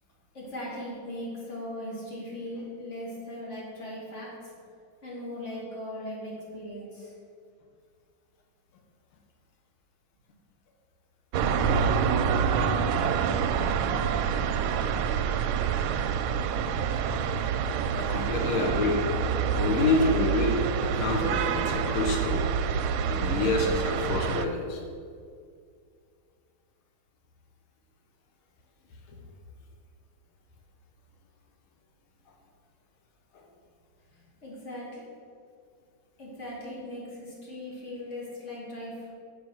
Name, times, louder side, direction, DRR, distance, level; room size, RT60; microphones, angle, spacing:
voice 1, 0.3-4.5 5.0-7.1 34.1-35.0 36.2-39.1, left 1 dB, 35° left, -5 dB, 2.6 m, -39 dB
sound 1, 11.3-24.5, right 7 dB, 90° right, 1.5 m, -27 dB
voice 2, 17.9-19.0 19.5-22.5 23.1-24.8 29.1-29.2 33.3-33.4, left 3 dB, 90° left, 1 dB, 1.9 m, -28 dB
7.0 x 6.0 x 7.5 m, 2.3 s
omnidirectional pair, 2.2 m